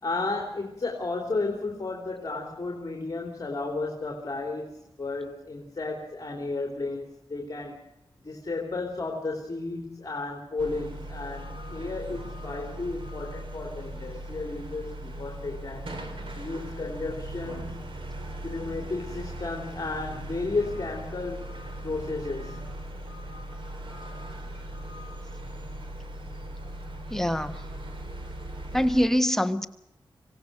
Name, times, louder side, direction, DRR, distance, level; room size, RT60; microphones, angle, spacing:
voice 1, 0.0-7.8 8.2-15.9 16.4-17.9 18.4-21.5 21.8-22.6, left 3 dB, 40° left, 3.1 m, -33 dB
sound 1, 10.6-29.1, right 1 dB, 65° right, 3.6 m, -39 dB
voice 2, 27.1-27.6 28.7-29.7, equal, 5° left, 1.1 m, -24 dB
26.0 x 17.0 x 6.6 m
wide cardioid pair, 130°, 9 cm